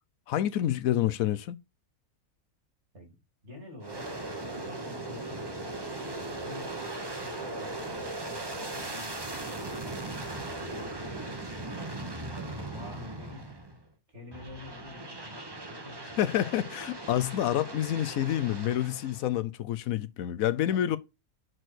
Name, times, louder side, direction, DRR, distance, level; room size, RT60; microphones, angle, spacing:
voice 1, 0.3-1.6 16.2-21.0, left 12 dB, 75° left, 1.0 m, -28 dB
voice 2, 3.4-6.8 7.2-10.1 10.5-11.8 12.3-13.5 14.1-16.5 20.7-21.0, left 2 dB, 50° right, 3.0 m, -49 dB
Aircraft, 3.8-13.8 14.3-19.3, right 2 dB, 20° right, 0.9 m, -38 dB
6.3 x 4.5 x 6.0 m
omnidirectional pair, 1.5 m